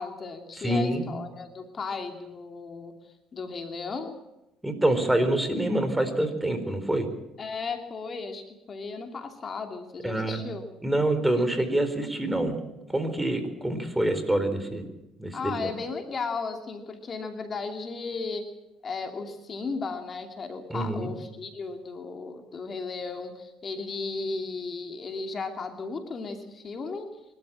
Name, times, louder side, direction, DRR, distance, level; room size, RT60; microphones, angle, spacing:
voice 1, 0.0-2.9 3.3-4.2 7.4-10.6 15.3-18.5 18.8-27.1, left 4 dB, 40° left, 5 dB, 2.7 m, -35 dB
voice 2, 0.6-1.1 4.6-7.1 10.0-10.4 10.8-12.6 12.9-14.8 15.2-15.7 20.7-21.1, right 1 dB, 10° right, 9 dB, 4.2 m, -26 dB
24.0 x 13.0 x 8.7 m, 0.97 s
supercardioid pair, 70°, 0 cm